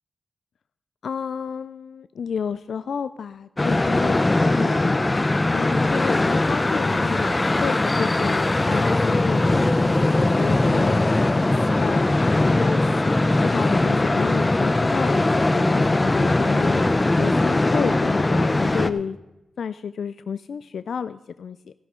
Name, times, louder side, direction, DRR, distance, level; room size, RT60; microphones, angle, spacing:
voice 1, 1.0-5.0 5.5-11.0 11.5-12.1 12.4-19.2 19.6-21.7, left 7 dB, 85° left, 13 dB, 0.3 m, -31 dB
sound 1, 3.6-18.9, left 2 dB, 25° left, 0.6 m, -20 dB
15.0 x 11.5 x 3.7 m, 0.98 s
wide cardioid pair, 85°, 0 cm